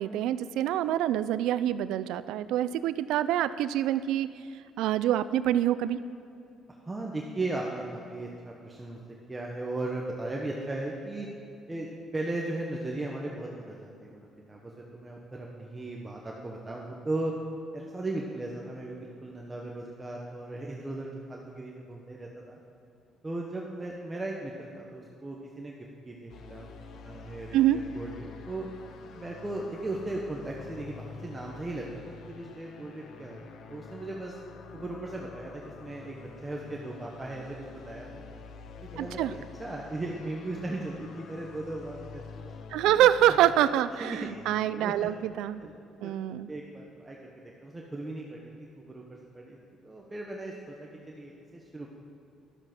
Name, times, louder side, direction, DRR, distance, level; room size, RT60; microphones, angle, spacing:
voice 1, 0.0-4.3 4.8-6.0 27.5-27.8 39.0-39.3 42.7-45.6 46.0-46.5, right 12 dB, 85° right, 14 dB, 0.5 m, -26 dB
voice 2, 6.8-9.0 9.3-11.3 11.7-17.3 17.7-22.6 23.2-25.8 26.1-26.7 27.0-28.7 29.1-34.4 34.7-38.2 38.8-42.5 42.9-43.0 43.3-43.4 44.0-45.1 45.6-45.8 46.0-46.1 46.5-49.0 49.3-49.6 49.8-51.9, right 2 dB, 15° right, -2 dB, 1.0 m, -37 dB
sound 1, 26.3-45.8, left 5 dB, 55° left, 0.9 m, -47 dB
14.5 x 12.5 x 6.0 m, 2.5 s
cardioid pair, 165°, 0 cm